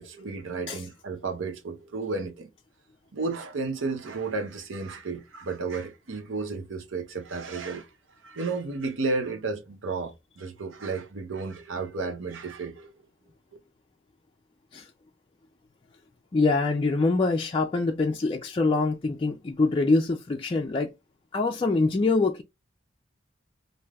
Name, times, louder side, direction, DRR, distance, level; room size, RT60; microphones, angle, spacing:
voice 1, 0.0-2.5 3.1-7.9 8.2-12.9, right 3 dB, 85° right, 0.7 m, -32 dB
voice 2, 16.3-20.9 21.3-22.4, left 3 dB, 30° left, 0.3 m, -24 dB
3.2 x 2.6 x 2.3 m
head